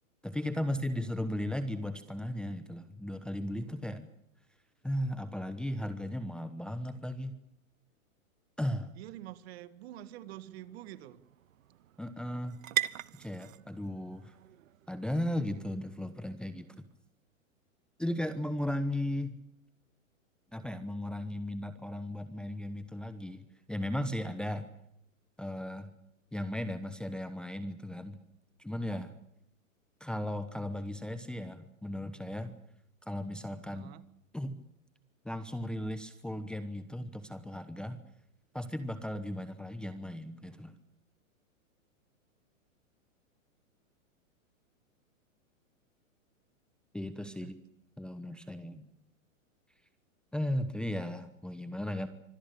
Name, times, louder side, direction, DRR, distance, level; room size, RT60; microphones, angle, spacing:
voice 1, 0.2-4.1 4.8-7.4 8.6-8.9 12.0-12.6 13.2-14.3 14.9-16.7 18.0-19.3 20.5-24.7 25.4-25.9 26.3-28.2 28.6-29.1 30.0-32.6 33.0-33.9 34.3-34.6 35.2-38.0 38.5-40.7 46.9-47.6 48.0-48.9 50.3-52.1, left 1 dB, ahead, 10 dB, 1.0 m, -36 dB
voice 2, 9.0-11.2 33.7-34.0 47.2-47.5, right 13 dB, 50° right, 15 dB, 1.8 m, -47 dB
sound 1, 9.1-17.0, right 12 dB, 75° right, 1.1 m, -42 dB
25.0 x 17.0 x 8.6 m, 0.74 s
hypercardioid pair, 145°, 40 cm